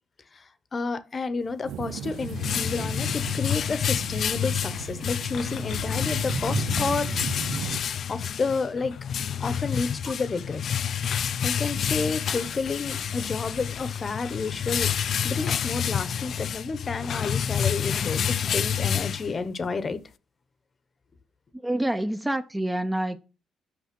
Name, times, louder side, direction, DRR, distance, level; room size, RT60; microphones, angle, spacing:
voice 1, 0.7-7.3 8.1-8.9 9.4-10.6 11.4-14.9 15.2-20.0, left 4 dB, 35° left, 0.8 m, -30 dB
sound 1, 1.6-7.8, right 10 dB, 75° right, 0.4 m, -36 dB
sound 2, 1.8-19.7, left 8 dB, 60° left, 0.4 m, -29 dB
voice 2, 21.6-23.2, right 1 dB, 10° right, 0.5 m, -27 dB
5.9 x 5.1 x 6.0 m
cardioid pair, 90°, 0 cm